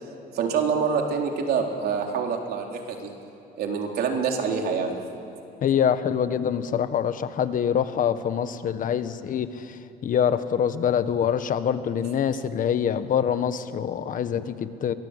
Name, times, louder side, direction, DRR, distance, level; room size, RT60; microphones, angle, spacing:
voice 1, 0.3-3.1 3.6-5.0, right 6 dB, 65° right, 2 dB, 3.8 m, -26 dB
voice 2, 5.6-9.8 10.0-14.9, left 8 dB, 55° left, 11 dB, 1.4 m, -25 dB
30.0 x 23.5 x 8.2 m, 2.9 s
cardioid pair, 110°, 17 cm